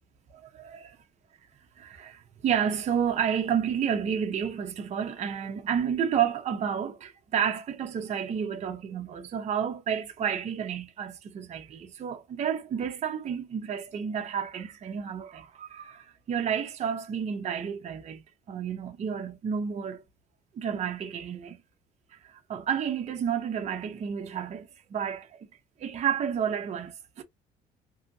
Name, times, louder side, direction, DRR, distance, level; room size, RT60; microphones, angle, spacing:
voice 1, 0.3-1.0 1.8-20.0 20.5-21.6 22.1-25.5 25.8-27.2, right 8 dB, 40° right, 0.6 m, -31 dB
2.7 x 2.5 x 2.6 m
cardioid pair, 110°, 17 cm